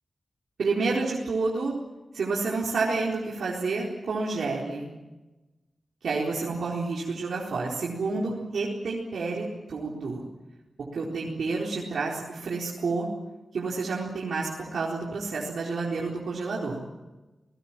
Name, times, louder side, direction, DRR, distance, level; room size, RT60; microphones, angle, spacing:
voice 1, 0.6-1.8 2.1-4.9 6.0-10.2 10.9-13.1 13.5-16.8, right 3 dB, 90° right, -4 dB, 4.2 m, -29 dB
28.5 x 19.5 x 7.5 m, 1.1 s
wide cardioid pair, 170°, 0 cm